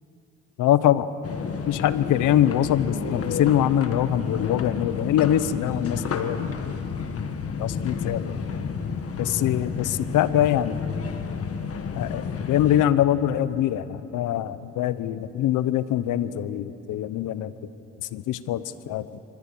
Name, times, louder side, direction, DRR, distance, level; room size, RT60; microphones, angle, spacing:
voice 1, 0.6-1.1 1.7-6.5 7.6-8.3 9.2-10.9 12.0-17.5 18.0-19.2, left 11 dB, 85° left, 15 dB, 0.9 m, -23 dB
sound 1, 1.2-12.8, left 5 dB, 50° left, 1.7 m, -31 dB
27.0 x 14.5 x 8.6 m, 3.0 s
cardioid pair, 90°, 30 cm